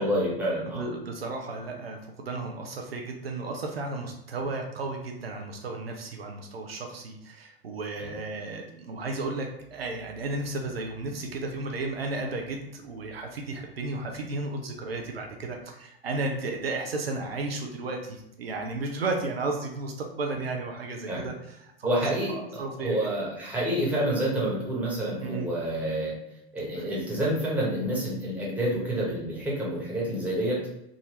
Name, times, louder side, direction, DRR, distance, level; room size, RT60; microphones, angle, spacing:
voice 1, 0.0-0.8 8.0-8.2 21.1-21.3 21.8-26.2 26.5-30.6, right 1 dB, 5° right, -5 dB, 1.3 m, -28 dB
voice 2, 0.7-22.0 22.4-23.0 25.2-25.5 26.8-26.9, right 3 dB, 80° right, 2 dB, 0.6 m, -34 dB
3.7 x 2.6 x 3.2 m, 0.85 s
figure-of-eight pair, 90°, 30 cm